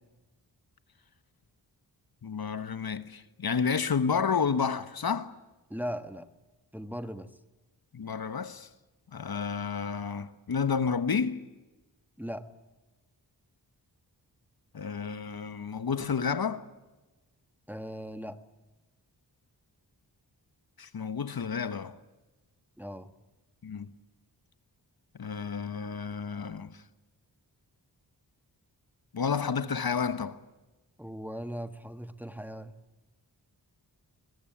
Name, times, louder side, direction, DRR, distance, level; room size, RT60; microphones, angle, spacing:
voice 1, 2.2-5.3 7.9-8.7 9.1-11.4 14.7-16.6 20.8-22.0 23.6-23.9 25.2-26.8 29.1-30.4, left 6 dB, 60° left, 1.2 m, -30 dB
voice 2, 5.7-6.3 6.7-7.3 12.2-12.5 17.7-18.4 22.8-23.1 31.0-32.7, equal, 5° right, 1.4 m, -38 dB
22.5 x 21.5 x 8.8 m
wide cardioid pair, 70°, 42 cm